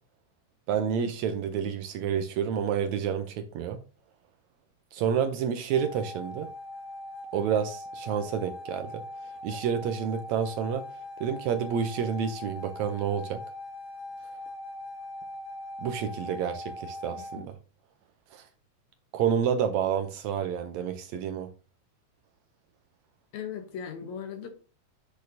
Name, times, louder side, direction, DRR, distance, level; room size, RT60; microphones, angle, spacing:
voice 1, 0.7-3.8 4.9-6.5 7.3-9.0 9.4-10.8 11.2-13.4 15.8-17.6 18.3-18.5 19.1-21.5, right 8 dB, 80° right, 1.8 m, -29 dB
sound 1, 5.7-17.4, left 1 dB, 25° right, 2.9 m, -41 dB
voice 2, 17.1-17.5 23.3-24.5, left 7 dB, 70° left, 2.2 m, -38 dB
8.4 x 6.3 x 2.7 m
omnidirectional pair, 3.6 m